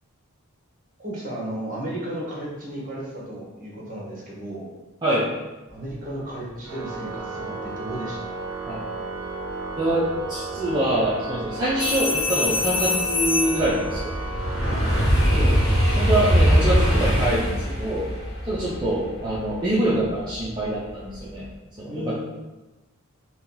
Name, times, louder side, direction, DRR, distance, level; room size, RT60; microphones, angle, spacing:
voice 1, 1.0-4.7 5.7-8.3 14.6-14.8 18.6-18.7 21.9-22.1, right 1 dB, 35° right, -4 dB, 0.9 m, -34 dB
Organ, 6.6-17.6, right 3 dB, 80° right, 0.5 m, -34 dB
voice 2, 9.8-14.1 15.3-15.6 16.0-18.1 18.5-21.5 21.8-22.1, right 1 dB, 20° right, -8 dB, 0.4 m, -25 dB
sound 1, 11.7-20.6 21.1-21.4, equal, 85° left, 1.1 m, -23 dB
sound 2, 11.8-13.8 16.2-16.4, left 4 dB, 60° left, 0.4 m, -25 dB
2.8 x 2.3 x 3.7 m, 1.1 s
head